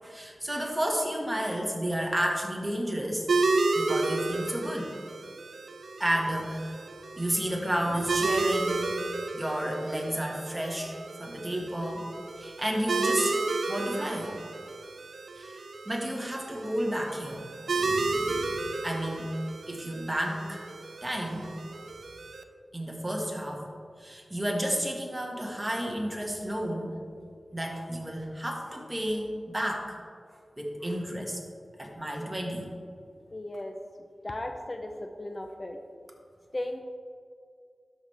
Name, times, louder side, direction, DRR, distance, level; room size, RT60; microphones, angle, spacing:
voice 1, 0.0-3.3 3.7-4.9 6.0-6.7 7.2-8.8 9.3-10.9 11.2-12.1 12.4-13.3 13.7-14.3 15.4-15.6 15.8-17.4 17.7-18.5 18.8-19.4 19.7-20.6 21.0-21.5 22.7-23.6 24.0-26.9 27.5-30.0 30.6-31.4 31.8-32.6, equal, 15° right, 0 dB, 1.7 m, -31 dB
sound 1, 3.3-22.4, right 3 dB, 90° right, 0.5 m, -32 dB
voice 2, 33.3-33.7 34.2-35.8 36.5-36.8, left 1 dB, 35° left, 4 dB, 0.6 m, -36 dB
12.0 x 6.2 x 3.4 m, 2.2 s
wide cardioid pair, 55°, 0 cm